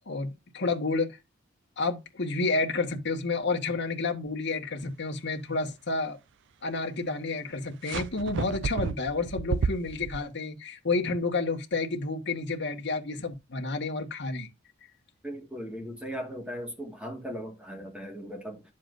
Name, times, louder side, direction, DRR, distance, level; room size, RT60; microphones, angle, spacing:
voice 1, 0.1-1.1 1.8-6.2 6.6-14.5, left 3 dB, 60° left, 1.5 m, -30 dB
sound 1, 7.9-10.2, right 5 dB, 60° right, 0.4 m, -31 dB
voice 2, 15.2-18.6, equal, 5° right, 1.9 m, -38 dB
10.5 x 7.2 x 2.6 m
head